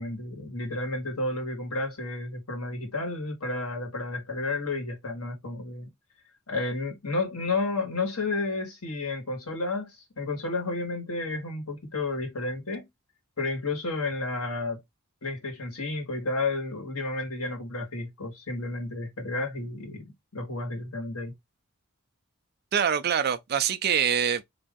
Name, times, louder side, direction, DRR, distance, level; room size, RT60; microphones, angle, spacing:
voice 1, 0.0-5.9 6.5-12.9 13.4-14.8 15.2-21.3, left 2 dB, 90° left, 1.6 m, -31 dB
voice 2, 22.7-24.4, right 8 dB, 45° right, 0.4 m, -24 dB
2.9 x 2.6 x 3.5 m
head